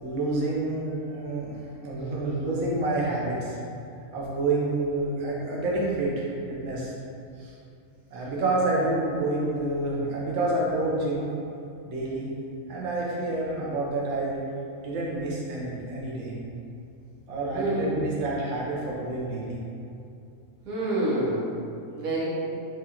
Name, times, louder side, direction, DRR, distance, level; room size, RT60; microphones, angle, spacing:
voice 1, 0.0-3.6 4.1-6.9 7.4-7.5 8.1-11.3 11.9-12.3 12.7-14.4 14.8-16.3 17.3-19.6, right 2 dB, 60° right, -5 dB, 1.0 m, -28 dB
voice 2, 17.5-18.2 20.7-21.6 22.0-22.3, right 1 dB, 85° right, -6 dB, 1.3 m, -27 dB
4.8 x 2.4 x 2.8 m, 2.6 s
omnidirectional pair, 1.4 m